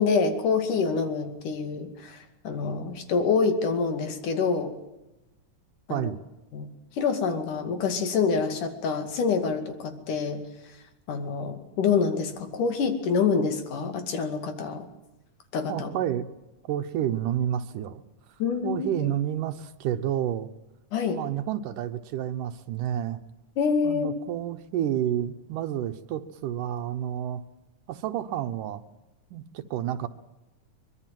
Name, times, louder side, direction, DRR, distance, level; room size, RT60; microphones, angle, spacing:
voice 1, 0.0-4.7 5.9-6.1 6.5-6.7 7.0-10.4 11.1-14.9 15.5-15.9 18.4-19.1 20.9-21.2 23.6-24.1, left 5 dB, 75° left, 7 dB, 3.9 m, -26 dB
voice 2, 15.7-16.3 16.6-18.0 18.6-20.5 21.1-23.2 23.8-27.4 27.9-28.8 29.3-30.1, right 11 dB, 85° right, 8 dB, 2.6 m, -30 dB
24.0 x 21.5 x 7.7 m, 0.97 s
omnidirectional pair, 3.6 m